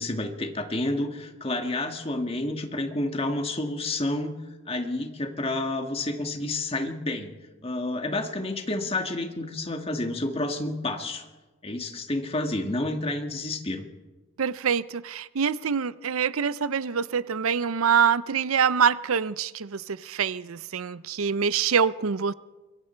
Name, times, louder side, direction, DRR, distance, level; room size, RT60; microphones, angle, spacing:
voice 1, 0.0-4.4 4.7-7.3 7.6-11.2 11.6-13.8, left 2 dB, 30° left, 1.9 m, -29 dB
voice 2, 14.4-22.3, right 7 dB, 85° right, 0.6 m, -25 dB
25.0 x 23.0 x 4.5 m
head